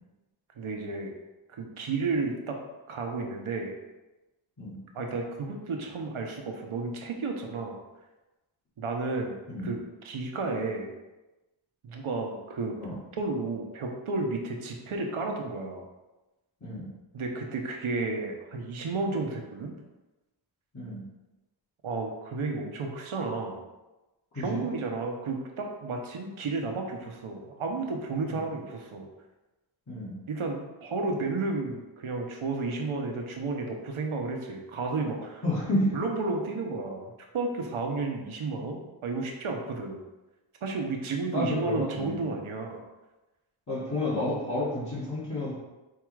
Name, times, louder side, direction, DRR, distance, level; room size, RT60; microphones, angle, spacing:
voice 1, 0.6-1.1 1.6-2.6 2.9-3.7 4.9-7.8 8.8-9.4 9.6-10.9 11.8-12.8 13.2-15.8 17.1-19.7 21.8-23.6 24.4-29.1 30.3-35.4 35.9-40.0 40.6-42.8, right 3 dB, 85° right, 2 dB, 0.8 m, -32 dB
voice 2, 35.4-35.9 41.3-42.3 43.7-45.5, left 1 dB, 35° left, -11 dB, 1.4 m, -30 dB
4.7 x 2.4 x 4.6 m, 1.1 s
wide cardioid pair, 115°, 48 cm